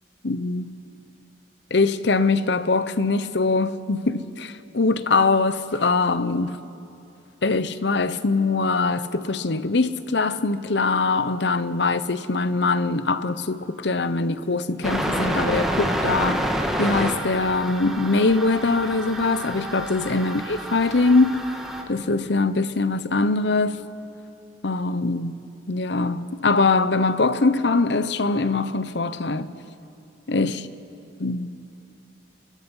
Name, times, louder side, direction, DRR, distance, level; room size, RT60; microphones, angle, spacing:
voice 1, 0.2-0.8 1.7-6.6 7.4-16.5 16.8-21.5 21.9-23.8 24.6-25.4 25.7-29.5 30.3-30.6 31.2-31.6, left 3 dB, 65° left, 0.8 m, -22 dB
sound 1, 14.8-21.8, equal, ahead, 1.8 m, -28 dB
28.5 x 22.0 x 5.6 m
head